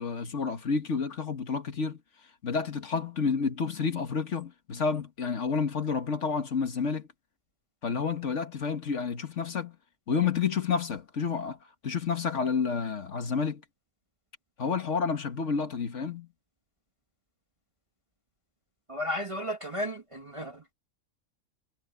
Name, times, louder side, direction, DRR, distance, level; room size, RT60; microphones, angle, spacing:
voice 1, 0.0-2.0 2.4-7.1 7.8-9.8 10.1-11.6 11.8-13.6 14.6-16.3, left 5 dB, 65° left, 1.9 m, -30 dB
voice 2, 18.9-20.6, equal, 25° right, 1.6 m, -33 dB
omnidirectional pair, 1.4 m